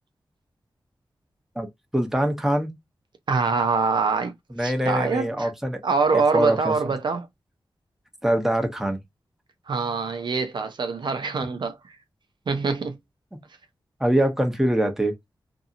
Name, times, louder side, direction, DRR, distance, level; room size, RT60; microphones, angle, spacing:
voice 1, 1.9-2.7 4.5-5.8 6.3-6.9 8.2-9.0 13.3-13.4 14.0-15.1, right 1 dB, 5° right, 0.7 m, -23 dB
voice 2, 3.3-4.3 4.6-5.5 5.8-7.3 9.7-12.0 12.5-13.0, right 4 dB, 65° right, 0.5 m, -24 dB
2.7 x 2.6 x 2.4 m
wide cardioid pair, 80°, 8 cm